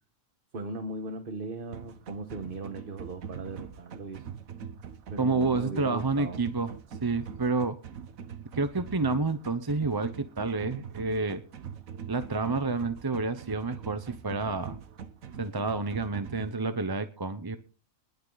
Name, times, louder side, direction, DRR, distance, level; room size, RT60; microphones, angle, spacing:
voice 1, 0.5-4.2 5.1-6.4, right 3 dB, 45° right, 7 dB, 1.3 m, -38 dB
sound 1, 1.7-16.5, right 7 dB, 90° right, 1.5 m, -43 dB
voice 2, 5.2-6.7 7.0-7.8 8.5-11.4 12.1-14.8 15.4-17.6, right 3 dB, 25° right, 10 dB, 0.6 m, -29 dB
20.5 x 9.4 x 4.0 m, 0.35 s
omnidirectional pair, 1.4 m